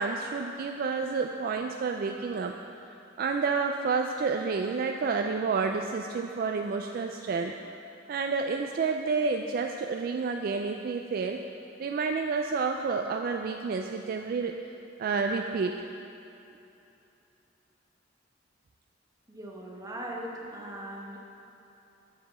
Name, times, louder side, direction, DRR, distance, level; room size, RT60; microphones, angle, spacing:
voice 1, 0.0-2.5 3.2-7.7 8.1-11.4 11.8-14.5 15.0-15.8, right 4 dB, 50° right, 3 dB, 0.3 m, -29 dB
voice 2, 19.3-21.2, right 1 dB, 20° right, -3 dB, 1.1 m, -39 dB
7.7 x 4.7 x 6.8 m, 2.9 s
head